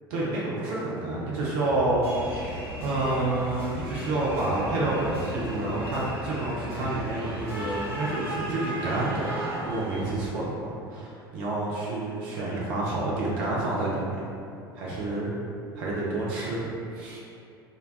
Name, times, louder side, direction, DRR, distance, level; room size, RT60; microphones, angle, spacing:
voice 1, 0.1-9.3 9.6-14.2 14.7-15.3 15.7-16.6 16.9-17.2, right 2 dB, 55° right, -6 dB, 0.6 m, -29 dB
sound 1, 1.6-7.9, equal, 85° left, 1.2 m, -40 dB
sound 2, 2.0-10.1, equal, 90° right, 0.9 m, -37 dB
3.8 x 2.2 x 2.4 m, 2.6 s
figure-of-eight pair, 70°, 13 cm